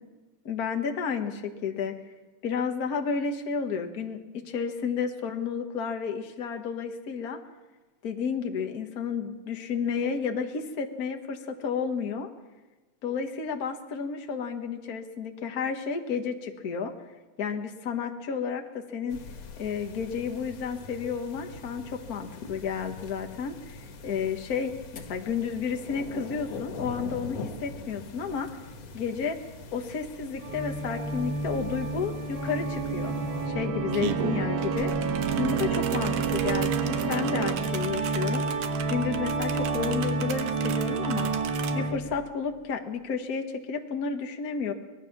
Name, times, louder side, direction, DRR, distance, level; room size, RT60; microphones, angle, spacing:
voice 1, 0.4-2.0 2.4-7.4 8.0-12.3 13.0-16.9 17.4-19.2 19.6-23.8 24.0-28.5 28.9-29.4 29.7-33.1 33.5-34.9 35.4-38.6 38.9-41.3 41.7-44.7, left 6 dB, 80° left, 5 dB, 0.8 m, -31 dB
sound 1, 19.1-33.5, left 3 dB, 55° left, 2.4 m, -43 dB
Organ, 30.4-42.3, right 4 dB, 60° right, 1.3 m, -29 dB
sound 2, 32.9-33.0 33.3-41.8, right 9 dB, 80° right, 2.8 m, -38 dB
24.0 x 20.0 x 5.9 m, 1.2 s
omnidirectional pair, 3.8 m